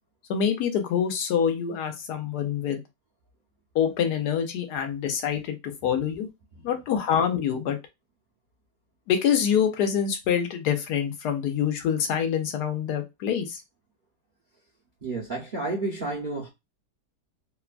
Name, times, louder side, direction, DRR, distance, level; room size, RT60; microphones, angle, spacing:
voice 1, 0.3-2.8 3.7-6.3 6.6-7.8 9.1-13.6, left 8 dB, 85° left, 1.2 m, -26 dB
voice 2, 15.0-16.5, right 2 dB, 50° right, 0.5 m, -30 dB
3.0 x 2.1 x 2.4 m
omnidirectional pair, 1.7 m